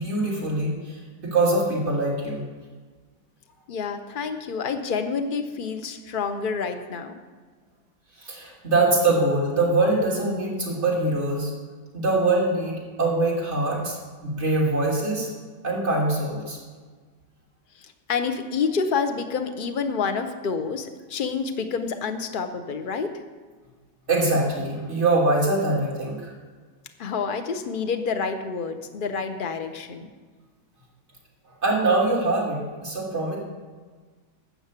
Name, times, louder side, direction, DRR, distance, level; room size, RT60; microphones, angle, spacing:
voice 1, 0.0-2.4 8.2-11.5 11.9-14.0 14.2-15.3 15.6-16.6 24.1-26.3 31.6-33.4, right 2 dB, 35° right, -4 dB, 3.2 m, -23 dB
voice 2, 3.7-7.1 17.8-23.1 27.0-30.1, left 5 dB, 55° left, 7 dB, 0.5 m, -28 dB
12.5 x 6.2 x 8.2 m, 1.5 s
omnidirectional pair, 2.1 m